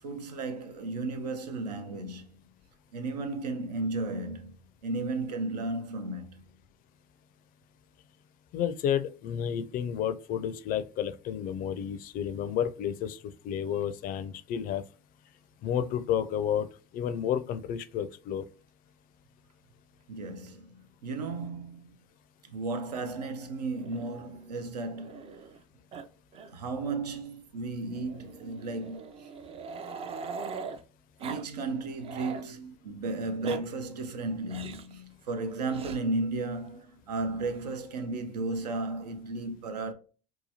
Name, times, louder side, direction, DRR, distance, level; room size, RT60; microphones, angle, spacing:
voice 1, 0.0-2.3 2.9-4.5 4.8-6.4 20.1-21.8 22.5-25.4 26.5-29.3 29.8-29.9 31.2-39.9, right 3 dB, 90° right, 0.5 m, -34 dB
voice 2, 8.5-13.2 13.4-14.8 15.6-16.7 16.9-18.4, left 9 dB, 45° left, 0.4 m, -31 dB
Growling, 23.7-25.6 25.9-26.1 26.3-26.5 26.8-26.9 27.9-30.8 31.2-31.5 31.8-32.5 33.2-33.6 34.5-34.9 35.7-36.0 37.1-37.8, right 5 dB, 30° right, 0.3 m, -42 dB
2.8 x 2.3 x 2.7 m
hypercardioid pair, 75°, 20 cm